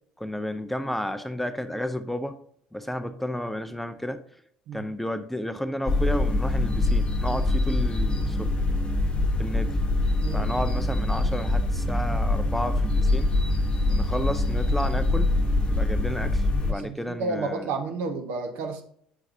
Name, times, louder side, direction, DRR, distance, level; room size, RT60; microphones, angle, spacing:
voice 1, 0.2-2.4 2.7-4.2 4.7-8.5 9.4-9.8 10.3-13.3 13.9-15.3 15.7-17.7, left 1 dB, 5° left, 9 dB, 0.5 m, -32 dB
sound 1, 5.9-16.7, left 2 dB, 25° left, 1.1 m, -24 dB
voice 2, 10.2-10.6 16.7-18.8, right 3 dB, 60° right, 5 dB, 1.0 m, -31 dB
8.0 x 5.8 x 2.7 m, 0.65 s
figure-of-eight pair, 60°, 4 cm